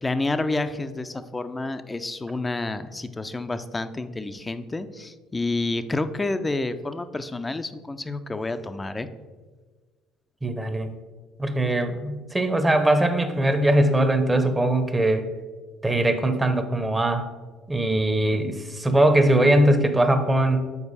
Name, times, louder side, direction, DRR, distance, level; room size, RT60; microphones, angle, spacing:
voice 1, 0.0-9.1, left 2 dB, 20° left, 11 dB, 0.5 m, -29 dB
voice 2, 10.4-10.9 11.4-15.2 15.8-17.3 17.7-20.6, right 1 dB, 15° right, 8 dB, 0.8 m, -21 dB
7.1 x 4.6 x 4.1 m, 1.4 s
hypercardioid pair, 60°, 0 cm